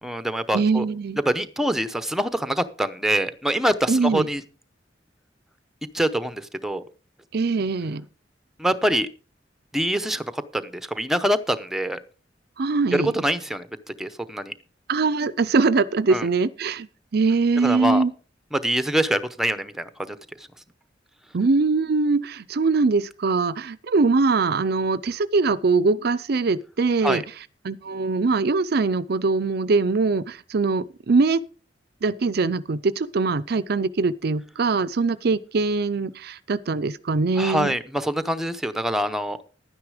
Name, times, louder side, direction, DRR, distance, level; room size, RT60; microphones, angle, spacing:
voice 1, 0.0-0.8 1.3-4.4 5.9-6.8 8.6-9.1 9.7-12.0 12.9-13.7 14.0-14.5 16.1-16.3 17.6-18.0 18.5-20.2 27.0-27.2 37.4-39.4, right 1 dB, ahead, 0.8 m, -25 dB
voice 2, 0.5-1.2 3.9-4.3 7.3-8.1 12.6-13.1 14.9-16.9 17.1-18.1 21.3-27.2 27.6-31.4 32.0-37.7, right 4 dB, 60° right, 0.5 m, -22 dB
11.5 x 9.6 x 4.9 m
head